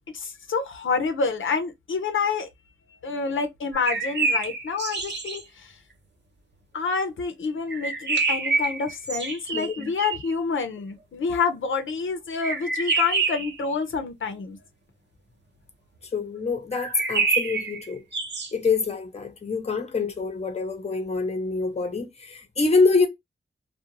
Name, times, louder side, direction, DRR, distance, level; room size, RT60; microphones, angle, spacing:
voice 1, 0.1-2.5 3.0-5.8 6.7-14.6, left 5 dB, 75° left, 0.5 m, -28 dB
sound 1, 3.7-5.4 7.7-10.3 12.4-13.6 16.7-18.5, right 4 dB, 60° right, 0.8 m, -27 dB
voice 2, 9.5-9.9 16.1-18.0 18.5-23.1, left 4 dB, 30° left, 0.7 m, -25 dB
2.4 x 2.1 x 2.8 m
wide cardioid pair, 110°, 20 cm